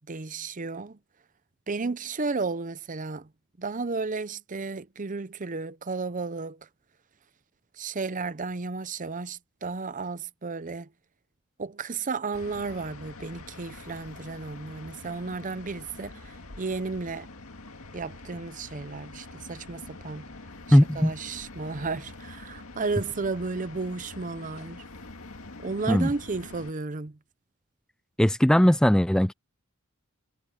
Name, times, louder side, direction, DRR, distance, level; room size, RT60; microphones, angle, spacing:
voice 1, 0.1-1.0 1.7-3.3 3.6-6.6 7.8-10.9 11.6-17.3 17.9-20.2 20.7-24.8 25.6-27.2, right 4 dB, 35° right, 0.7 m, -33 dB
sound 1, 12.3-26.7, left 2 dB, 75° left, 2.1 m, -45 dB
voice 2, 20.7-21.1 25.9-26.1 28.2-29.3, equal, 5° left, 0.3 m, -19 dB
head